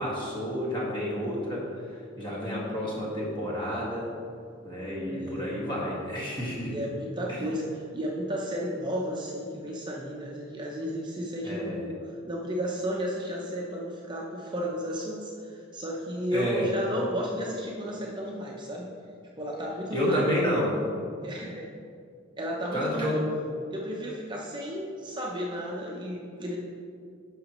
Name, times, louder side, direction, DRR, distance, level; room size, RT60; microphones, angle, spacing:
voice 1, 0.0-1.7 2.2-4.1 4.6-6.7 7.3-7.5 11.4-11.8 16.3-16.7 19.9-20.8 22.7-23.2, equal, 25° left, -5 dB, 2.0 m, -30 dB
voice 2, 5.0-5.5 6.7-12.0 12.2-18.9 19.4-20.3 21.2-21.7 22.4-23.2 23.7-26.6, equal, 25° right, -2 dB, 0.7 m, -33 dB
10.0 x 6.3 x 3.1 m, 2.3 s
head